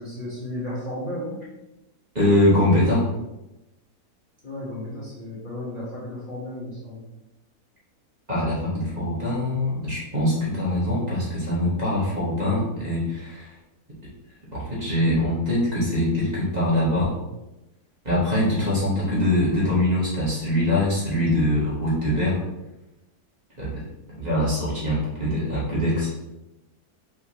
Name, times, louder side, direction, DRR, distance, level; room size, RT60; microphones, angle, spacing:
voice 1, 0.0-1.4 4.4-7.0, left 1 dB, 35° left, -8 dB, 1.1 m, -34 dB
voice 2, 2.1-3.0 8.3-13.5 14.5-17.1 18.0-22.4 23.6-23.8 24.2-26.1, left 1 dB, 30° right, -8 dB, 1.3 m, -23 dB
5.1 x 3.1 x 2.8 m, 0.97 s
omnidirectional pair, 1.7 m